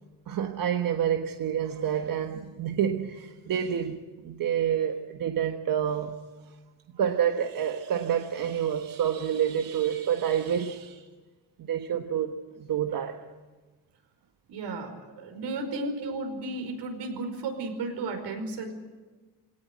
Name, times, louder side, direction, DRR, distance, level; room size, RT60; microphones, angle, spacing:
voice 1, 0.3-6.2 7.0-11.1 11.6-13.2 15.7-15.9, right 9 dB, 50° right, 1.4 m, -28 dB
voice 2, 14.5-18.7, right 2 dB, 75° right, 5.1 m, -34 dB
23.0 x 18.0 x 9.3 m
cardioid pair, 120°, 42 cm